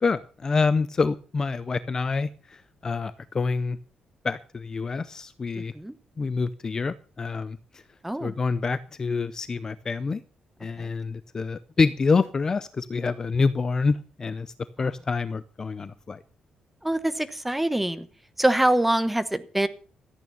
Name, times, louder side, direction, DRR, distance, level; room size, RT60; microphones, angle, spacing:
voice 1, 0.0-3.8 4.2-5.7 6.2-7.6 8.2-10.2 10.6-14.5 14.8-16.2, left 4 dB, 25° left, 15 dB, 0.5 m, -27 dB
voice 2, 8.0-8.3 10.8-10.9 16.8-18.1 18.4-19.7, right 1 dB, 5° right, 12 dB, 1.0 m, -24 dB
14.0 x 9.0 x 6.9 m, 0.40 s
cardioid pair, 170°, 2 cm